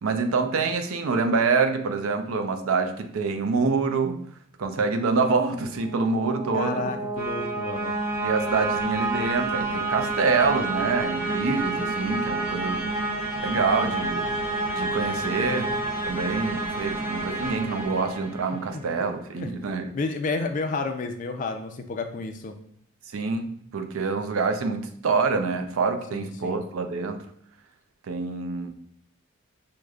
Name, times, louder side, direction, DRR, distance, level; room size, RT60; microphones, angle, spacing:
voice 1, 0.0-4.2 4.6-6.9 8.2-12.9 13.4-14.3 14.7-15.7 16.0-20.0 23.1-27.2 28.1-28.7, right 4 dB, 75° right, 7 dB, 0.4 m, -26 dB
sound 1, 5.7-18.7, right 2 dB, 25° right, 1.4 m, -29 dB
voice 2, 6.5-7.9 18.7-18.8 19.4-19.5 19.9-22.5 26.1-26.6, left 3 dB, 35° left, 6 dB, 0.3 m, -30 dB
6.2 x 2.2 x 2.3 m, 0.66 s
head